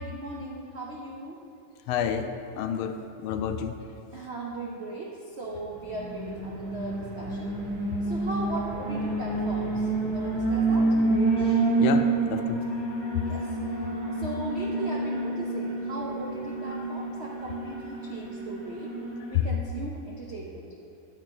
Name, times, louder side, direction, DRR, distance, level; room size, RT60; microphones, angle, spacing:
voice 1, 0.0-1.4 4.1-7.5 8.0-10.9 13.2-18.9 19.3-20.7, right 2 dB, 65° right, -2 dB, 0.6 m, -38 dB
voice 2, 1.9-3.8 11.7-12.6, left 7 dB, 80° left, 7 dB, 1.4 m, -30 dB
Alarm, 5.9-19.3, right 3 dB, 45° right, 2.4 m, -28 dB
9.6 x 5.0 x 7.5 m, 2.8 s
omnidirectional pair, 2.3 m